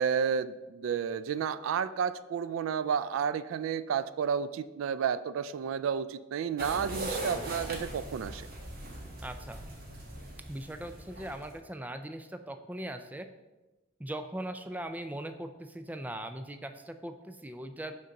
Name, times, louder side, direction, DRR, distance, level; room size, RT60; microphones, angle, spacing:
voice 1, 0.0-8.5, right 7 dB, 90° right, 14 dB, 0.3 m, -31 dB
sound 1, 6.6-11.6, right 1 dB, 50° right, 1.3 m, -40 dB
voice 2, 9.2-9.6 10.5-13.3 14.0-18.0, right 1 dB, 10° right, 8 dB, 0.4 m, -40 dB
6.4 x 3.9 x 5.8 m, 1.1 s
head